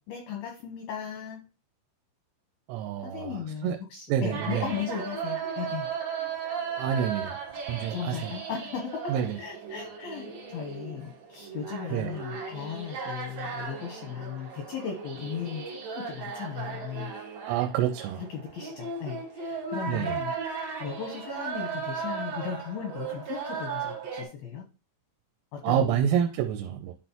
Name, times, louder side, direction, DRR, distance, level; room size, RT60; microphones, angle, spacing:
voice 1, 0.1-1.4 3.0-5.9 7.9-8.8 9.4-17.1 18.2-20.3 20.8-24.6 25.5-26.1, left 7 dB, 80° left, 2 dB, 2.2 m, -37 dB
voice 2, 2.7-3.4 3.6-3.8 4.1-4.6 6.8-7.4 7.7-8.3 9.1-9.4 11.9-12.1 17.4-18.2 19.9-20.1 25.6-26.9, right 9 dB, 85° right, 6 dB, 3.0 m, -28 dB
sound 1, 4.3-24.2, right 6 dB, 65° right, 1.7 m, -36 dB
11.0 x 4.1 x 2.9 m, 0.34 s
omnidirectional pair, 5.7 m